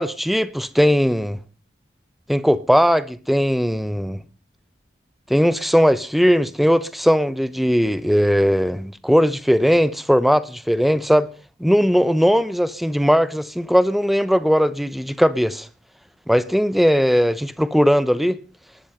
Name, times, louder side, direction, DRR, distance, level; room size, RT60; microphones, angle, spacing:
voice 1, 0.0-1.4 2.3-4.2 5.3-11.3 11.6-15.7 16.3-18.4, equal, ahead, 0.8 m, -18 dB
19.0 x 12.0 x 5.5 m
head